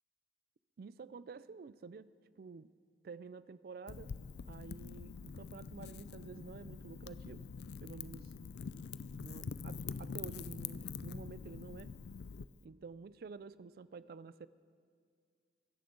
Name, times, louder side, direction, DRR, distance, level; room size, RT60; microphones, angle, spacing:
voice 1, 0.8-2.7 3.0-4.1 4.5-7.4 7.8-8.3 9.2-11.9 12.6-14.5, right 4 dB, 55° right, 17 dB, 0.4 m, -50 dB
Wind / Fire, 3.9-12.4, left 5 dB, 65° left, 0.4 m, -45 dB
24.0 x 10.5 x 3.9 m, 2.1 s
head